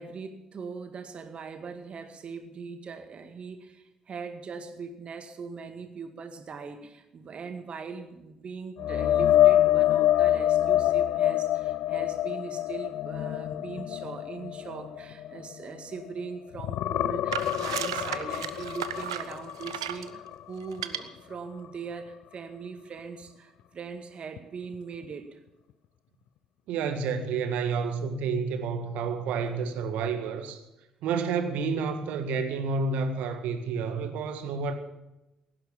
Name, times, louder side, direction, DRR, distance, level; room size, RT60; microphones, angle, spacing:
voice 1, 0.0-25.4, right 5 dB, 45° right, 8 dB, 2.0 m, -40 dB
sound 1, 8.8-16.2 16.5-20.4 20.8-21.0 24.4-24.5, left 12 dB, 60° left, 0.5 m, -26 dB
sound 2, 17.3-20.1 20.7-21.0, right 11 dB, 80° right, 0.6 m, -34 dB
voice 2, 26.7-30.6 31.0-34.7, right 5 dB, 65° right, 8 dB, 1.7 m, -30 dB
17.5 x 10.5 x 7.3 m, 0.95 s
figure-of-eight pair, 45°, 3 cm